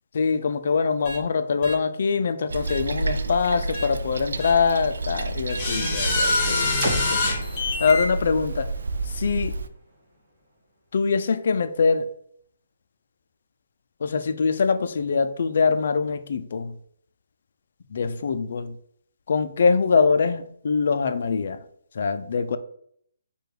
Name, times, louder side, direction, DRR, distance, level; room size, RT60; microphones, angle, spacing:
voice 1, 0.1-7.4 7.8-8.7 9.1-9.6 10.9-12.1 14.0-16.8 17.9-18.8 19.3-21.6 21.9-22.6, left 5 dB, 40° left, 10 dB, 0.3 m, -23 dB
sound 1, 1.0-1.2 1.6-1.7 2.7-2.8 3.7-3.8 4.4-4.5 5.5-8.0, left 2 dB, 15° left, 0.7 m, -25 dB
Toilet flush, 2.5-9.7, right 3 dB, 80° right, 0.4 m, -30 dB
sound 2, 6.8-10.7, right 1 dB, 15° right, 1.0 m, -35 dB
4.8 x 2.3 x 4.8 m, 0.66 s
hypercardioid pair, 180°, 0 cm